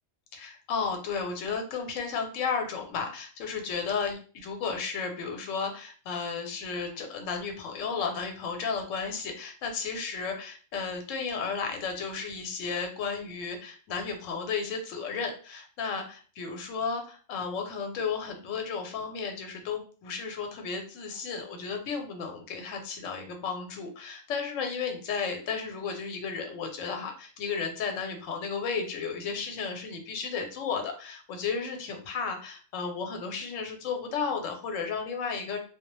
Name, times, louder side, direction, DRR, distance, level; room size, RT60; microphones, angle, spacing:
voice 1, 0.3-35.6, left 5 dB, 80° left, 4 dB, 1.0 m, -33 dB
2.2 x 2.0 x 2.9 m, 0.40 s
omnidirectional pair, 1.3 m